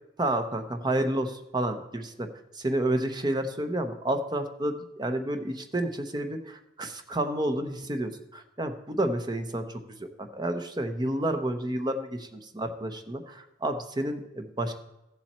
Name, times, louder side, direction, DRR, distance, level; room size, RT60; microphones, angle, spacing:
voice 1, 0.2-2.3 2.5-14.7, right 1 dB, 25° right, 7 dB, 0.9 m, -30 dB
14.5 x 7.4 x 4.3 m, 0.94 s
head